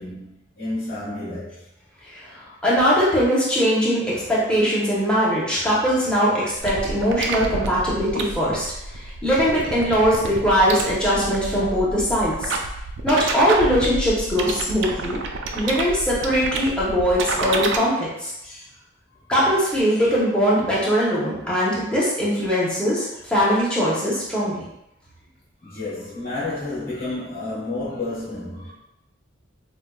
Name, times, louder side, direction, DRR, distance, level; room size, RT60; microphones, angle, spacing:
voice 1, 0.0-1.6 25.6-28.7, left 2 dB, 50° left, -10 dB, 1.2 m, -30 dB
voice 2, 2.6-12.5 13.0-15.2 15.5-18.6 19.3-24.6, equal, 5° left, -8 dB, 0.8 m, -21 dB
sound 1, 6.6-17.8, right 3 dB, 60° right, 0.4 m, -29 dB
5.0 x 2.2 x 2.3 m, 0.84 s
head